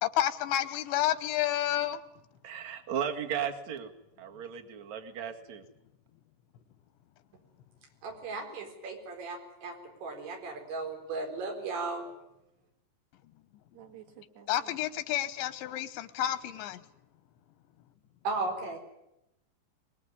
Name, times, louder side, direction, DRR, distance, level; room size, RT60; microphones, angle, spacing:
voice 1, 0.0-2.0 14.5-16.8, left 12 dB, 90° left, 13 dB, 3.5 m, -30 dB
voice 2, 2.4-3.9 4.2-5.6, right 8 dB, 50° right, 4 dB, 2.5 m, -35 dB
voice 3, 8.0-12.0 18.2-18.8, right 3 dB, 85° right, 2 dB, 6.8 m, -36 dB
voice 4, 13.7-14.8, right 10 dB, 65° right, 5 dB, 4.0 m, -52 dB
23.5 x 20.5 x 9.8 m, 0.86 s
omnidirectional pair, 5.1 m